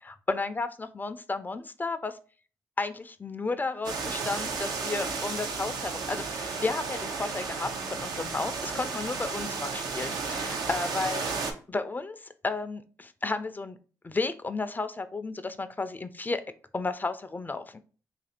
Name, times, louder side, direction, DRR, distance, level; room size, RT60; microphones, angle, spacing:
voice 1, 0.0-2.2 2.8-11.3 11.7-13.8 14.0-16.4 16.7-17.8, left 3 dB, 25° left, 10 dB, 0.3 m, -33 dB
sound 1, 3.8-11.5, right 4 dB, 80° right, 0.6 m, -33 dB
2.8 x 2.5 x 4.1 m, 0.39 s
cardioid pair, 60°, 7 cm